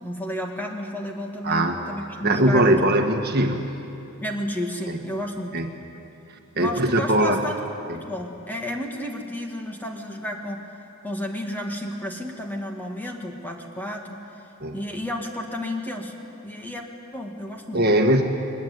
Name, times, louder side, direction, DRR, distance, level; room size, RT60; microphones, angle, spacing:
voice 1, 0.0-3.0 4.2-5.6 6.6-7.6 7.9-10.7 11.0-14.4 14.7-16.1 16.4-17.9, left 1 dB, 10° left, 2 dB, 2.0 m, -32 dB
voice 2, 1.4-1.8 2.2-3.8 4.9-5.0 5.5-5.7 6.5-7.4 14.6-14.8 17.7-18.2, right 1 dB, 45° right, 4 dB, 1.5 m, -20 dB
22.5 x 20.5 x 9.5 m, 2.8 s
head